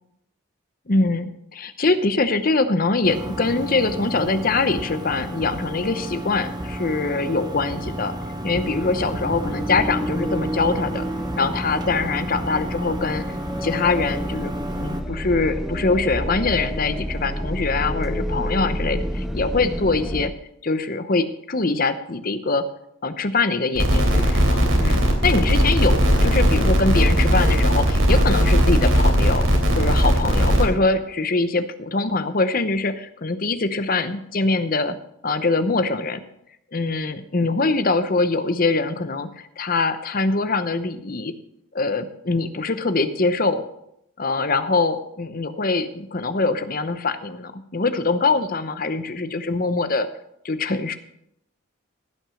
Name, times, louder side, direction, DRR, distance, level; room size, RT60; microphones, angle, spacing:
voice 1, 0.9-8.1 8.4-11.1 11.4-20.3 20.6-22.7 23.0-29.5 29.8-35.0 35.2-36.2 36.7-41.3 41.7-43.7 44.2-50.1 50.4-51.0, left 3 dB, 40° left, 11 dB, 0.8 m, -23 dB
sound 1, 3.0-15.0, right 1 dB, 20° right, 1.0 m, -31 dB
sound 2, 8.6-20.3, equal, ahead, 0.6 m, -30 dB
sound 3, 23.8-30.6, equal, 70° right, 3.2 m, -18 dB
16.0 x 6.1 x 6.3 m, 0.79 s
head